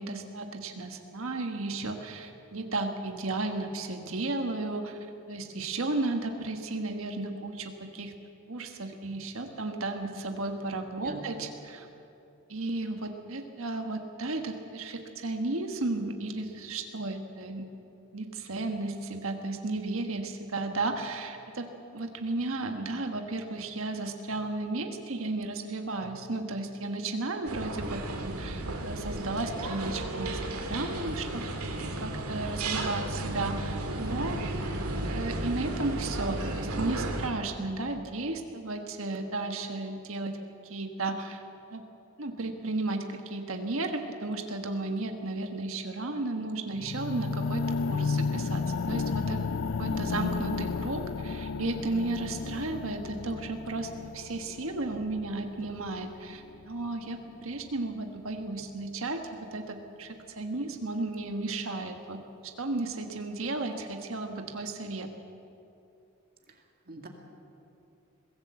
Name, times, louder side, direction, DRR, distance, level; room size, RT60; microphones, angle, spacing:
voice 1, 0.0-8.1 8.5-11.9 12.5-17.7 18.1-30.4 30.6-31.4 32.0-34.4 35.0-40.4 40.6-41.4 41.7-41.8 42.2-49.4 49.8-65.1, right 2 dB, 65° right, 5 dB, 1.5 m, -34 dB
sound 1, 27.5-37.3, right 2 dB, 90° right, 2.4 m, -33 dB
sound 2, 46.8-56.9 57.5-57.6, left 4 dB, 60° left, 0.5 m, -33 dB
voice 2, 66.5-67.1, right 3 dB, 45° right, 2 dB, 2.0 m, -44 dB
22.5 x 16.5 x 7.7 m, 2.7 s
head